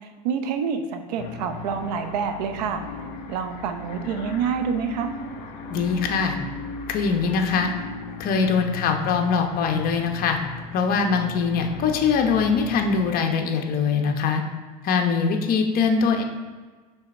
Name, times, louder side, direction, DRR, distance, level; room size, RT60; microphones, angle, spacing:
voice 1, 0.2-2.8 3.3-5.1, right 6 dB, 90° right, 7 dB, 0.8 m, -27 dB
sound 1, 1.2-13.2, left 5 dB, 65° left, 1.4 m, -37 dB
voice 2, 5.7-6.4 6.9-7.7 8.2-10.4 10.7-14.4 14.8-16.2, left 5 dB, 45° left, 4 dB, 1.0 m, -22 dB
5.6 x 4.2 x 5.9 m, 1.4 s
supercardioid pair, 120°, 20 cm